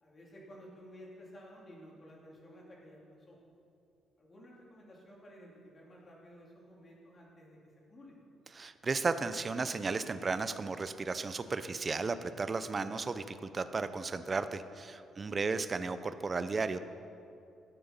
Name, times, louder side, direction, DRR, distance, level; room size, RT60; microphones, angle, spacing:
voice 1, 0.0-3.4 4.2-7.6 7.9-8.2, equal, 30° left, -3 dB, 2.9 m, -54 dB
voice 2, 8.5-16.8, right 4 dB, 30° right, 11 dB, 0.6 m, -34 dB
13.0 x 8.8 x 5.3 m, 2.6 s
cardioid pair, 115°, 0 cm